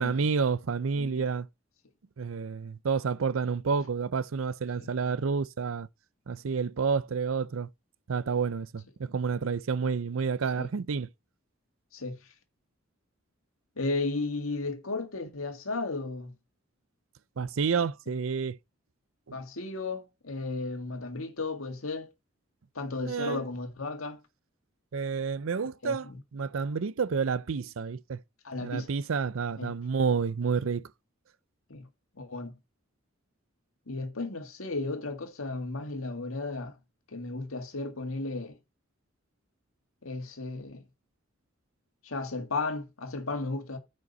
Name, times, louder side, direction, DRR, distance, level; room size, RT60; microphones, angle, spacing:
voice 1, 0.0-1.5 2.2-5.9 6.3-7.7 8.1-11.1 17.4-18.6 23.0-23.4 24.9-28.2 28.6-30.8, right 5 dB, 75° right, 0.5 m, -29 dB
voice 2, 0.9-1.3 4.8-4.9 10.6-10.7 11.9-12.2 13.8-16.3 19.3-22.1 22.8-24.2 25.8-26.2 28.4-28.9 29.6-29.8 31.7-31.9 32.2-32.5 33.9-36.8 37.1-38.6 40.0-40.8 42.0-43.8, left 3 dB, 85° left, 1.8 m, -34 dB
9.5 x 5.2 x 4.0 m
head